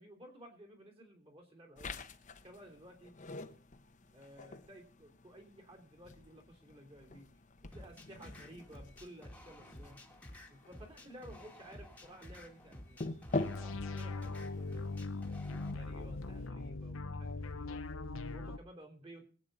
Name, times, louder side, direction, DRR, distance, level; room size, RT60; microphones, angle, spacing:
voice 1, 0.0-2.0 2.4-3.1 4.1-7.3 7.6-10.0 10.5-15.0 15.4-17.9 18.3-19.2, right 1 dB, 30° right, 4 dB, 3.3 m, -55 dB
sound 1, 1.8-16.5, left 2 dB, 35° left, 0.9 m, -46 dB
sound 2, 7.7-15.7, left 1 dB, 10° left, 1.7 m, -53 dB
sound 3, 13.3-18.6, left 3 dB, 80° left, 0.8 m, -40 dB
22.0 x 8.7 x 4.0 m, 0.40 s
head